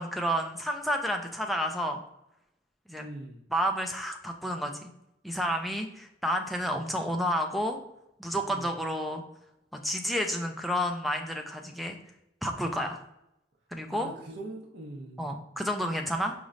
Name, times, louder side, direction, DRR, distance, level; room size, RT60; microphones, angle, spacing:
voice 1, 0.0-2.0 2.9-3.1 3.5-4.9 5.2-7.8 8.2-9.2 9.8-12.0 12.4-13.0 13.7-14.1 15.2-16.3, equal, ahead, 2 dB, 0.4 m, -30 dB
voice 2, 3.0-3.4 6.7-6.9 8.5-8.7 13.9-15.3, right 2 dB, 70° right, -2 dB, 0.7 m, -42 dB
5.1 x 3.2 x 2.5 m, 0.82 s
head